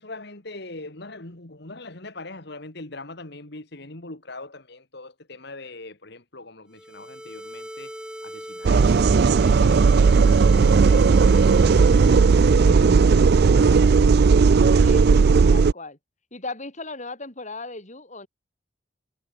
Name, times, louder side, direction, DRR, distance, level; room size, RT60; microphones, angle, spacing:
voice 1, 0.0-7.9 8.2-12.3 12.5-14.3, left 2 dB, 60° left, 2.5 m, -42 dB
sound 1, 6.7-12.9, equal, 5° right, 7.3 m, -39 dB
sound 2, 8.6-15.7, right 5 dB, 55° right, 0.4 m, -16 dB
voice 2, 14.8-16.0 16.3-18.3, left 3 dB, 40° left, 5.5 m, -37 dB
head